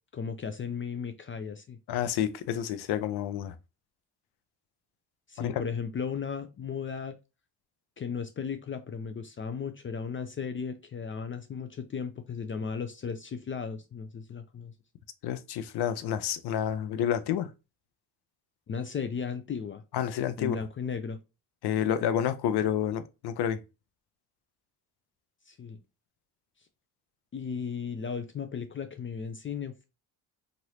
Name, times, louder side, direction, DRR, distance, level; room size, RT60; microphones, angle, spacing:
voice 1, 0.1-1.8 5.3-7.2 8.0-14.7 18.7-19.8 20.4-21.2 25.5-25.8 27.3-29.8, left 6 dB, 30° left, 0.4 m, -35 dB
voice 2, 1.9-3.5 5.4-5.6 15.2-17.5 19.9-20.6 21.6-23.6, left 10 dB, 70° left, 0.6 m, -29 dB
3.0 x 2.6 x 2.8 m
cardioid pair, 80°, 42 cm